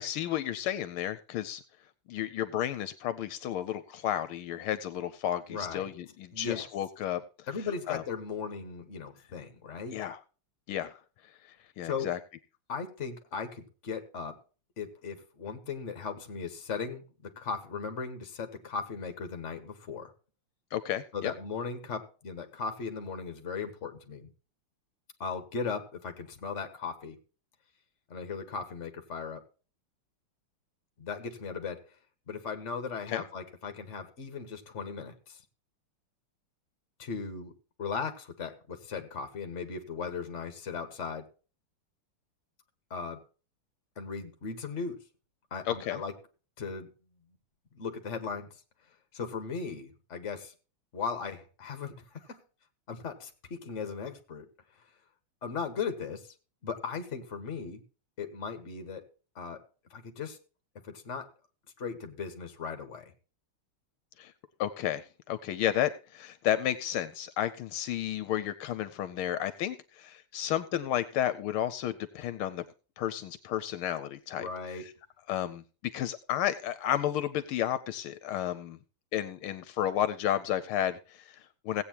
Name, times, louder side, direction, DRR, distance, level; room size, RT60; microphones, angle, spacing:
voice 1, 0.0-1.6 2.1-7.5 7.9-8.0 9.9-10.2 10.7-11.0 11.4-12.2 20.7-21.3 33.1-33.2 45.6-46.0 64.2-64.3 64.6-72.6 73.0-74.5 74.8-74.9 75.3-78.8 79.1-81.8, left 11 dB, 80° left, 1.5 m, -32 dB
voice 2, 5.5-5.9 6.3-6.7 7.5-10.0 11.8-12.1 12.7-14.4 14.8-20.1 21.1-24.3 25.2-27.2 28.1-29.4 31.0-31.8 32.3-35.4 37.0-37.5 37.8-41.3 42.9-43.2 44.0-45.0 45.5-46.1 46.6-46.9 47.7-48.5 49.1-50.5 50.9-52.4 52.9-54.5 55.4-56.3 56.6-57.8 58.2-59.0 59.3-59.6 59.9-60.4 60.8-61.3 61.8-63.1 74.4-74.9, left 5 dB, 35° left, 1.6 m, -37 dB
17.0 x 8.5 x 2.9 m
omnidirectional pair, 2.4 m